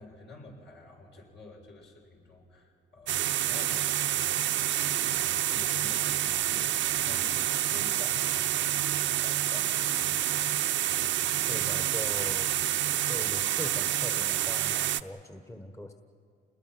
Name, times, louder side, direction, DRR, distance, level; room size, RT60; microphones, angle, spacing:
voice 1, 0.0-10.7, left 2 dB, 60° left, -1 dB, 6.9 m, -50 dB
sound 1, 3.1-15.0, right 12 dB, 70° right, 0.7 m, -28 dB
voice 2, 11.3-12.5 13.1-15.9, left 1 dB, 15° left, 5 dB, 1.3 m, -41 dB
28.5 x 20.5 x 6.0 m, 2.3 s
cardioid pair, 90°, 20 cm